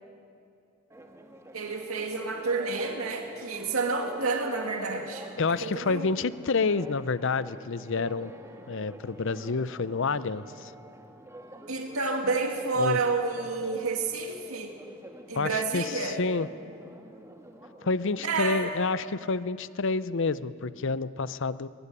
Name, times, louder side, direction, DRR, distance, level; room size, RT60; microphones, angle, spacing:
Church bell, 0.9-19.2, right 1 dB, 15° right, 1.6 m, -48 dB
voice 1, 1.5-6.1 11.7-14.7 15.3-16.2 18.2-18.6, right 3 dB, 85° right, 3 dB, 2.2 m, -30 dB
voice 2, 5.4-8.3 8.7-10.7 12.8-13.0 15.3-16.5 17.8-21.7, left 4 dB, 60° left, 16 dB, 0.7 m, -28 dB
21.5 x 21.0 x 10.0 m, 2.5 s
head